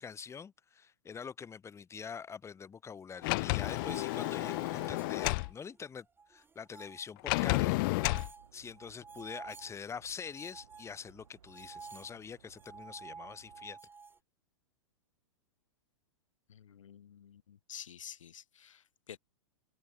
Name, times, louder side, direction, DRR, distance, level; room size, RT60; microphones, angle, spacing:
voice 1, 0.0-8.2 8.5-13.8, left 6 dB, 15° left, 2.4 m, -45 dB
Sliding door, 3.2-5.5 7.3-8.3, left 25 dB, 45° left, 0.4 m, -31 dB
sound 1, 3.6-5.9 6.2-7.1 7.6-9.7 10.2-14.2, right 5 dB, 15° right, 2.4 m, -50 dB
sound 2, 8.3-13.7, right 8 dB, 75° right, 3.4 m, -62 dB
voice 2, 16.5-19.2, left 9 dB, 75° left, 1.0 m, -50 dB
hypercardioid pair, 110°, 16 cm